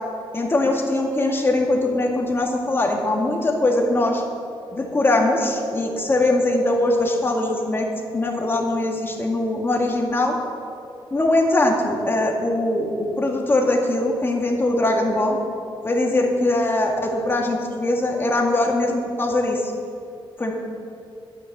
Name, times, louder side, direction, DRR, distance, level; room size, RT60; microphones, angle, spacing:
voice 1, 0.3-4.2 4.7-7.9 8.1-10.3 11.1-15.4 15.8-19.6 20.4-20.5, left 2 dB, 25° left, 0 dB, 1.9 m, -21 dB
11.0 x 9.9 x 7.3 m, 2.6 s
wide cardioid pair, 125°, 9 cm